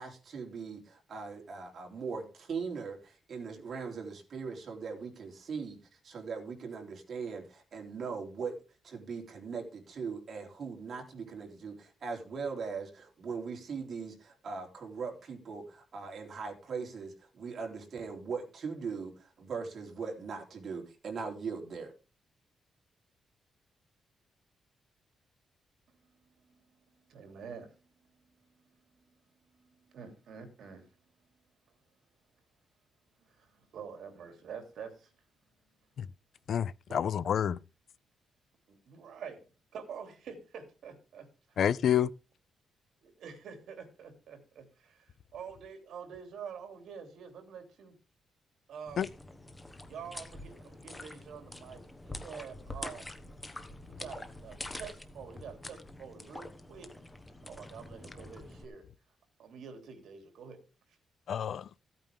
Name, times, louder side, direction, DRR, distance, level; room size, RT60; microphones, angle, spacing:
voice 1, 0.0-5.8 6.0-8.6 8.8-21.9, right 5 dB, 45° right, 3.6 m, -40 dB
voice 2, 26.1-31.3 33.2-35.1 36.9-37.1 38.7-41.6 43.0-47.9 48.7-49.1 49.8-53.1 53.9-56.9 57.5-58.9 59.4-60.6, right 6 dB, 70° right, 3.1 m, -47 dB
voice 3, 36.5-37.6 41.6-42.1 49.0-49.1 61.3-61.7, left 9 dB, 55° left, 0.5 m, -28 dB
sound 1, 48.9-58.6, left 1 dB, 10° left, 1.2 m, -46 dB
15.5 x 9.0 x 3.6 m
wide cardioid pair, 170°, 0 cm